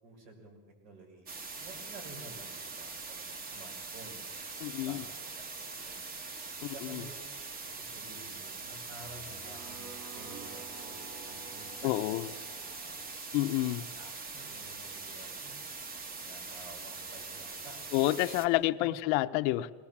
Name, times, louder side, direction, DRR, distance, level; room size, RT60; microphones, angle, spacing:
voice 1, 0.0-4.5 4.8-6.0 6.7-7.4 7.8-12.3 12.8-12.9 13.6-15.6 16.3-18.4 18.8-18.9, right 2 dB, 80° right, 6.1 m, -52 dB
sound 1, 1.3-18.5, right 4 dB, 25° right, 1.2 m, -43 dB
voice 2, 4.6-5.0 6.6-7.0 11.8-12.3 13.3-13.9 17.9-19.7, left 17 dB, 75° left, 0.9 m, -29 dB
sound 2, 7.6-13.1, right 4 dB, 45° right, 2.2 m, -52 dB
22.5 x 19.5 x 7.3 m
cardioid pair, 155°, 37 cm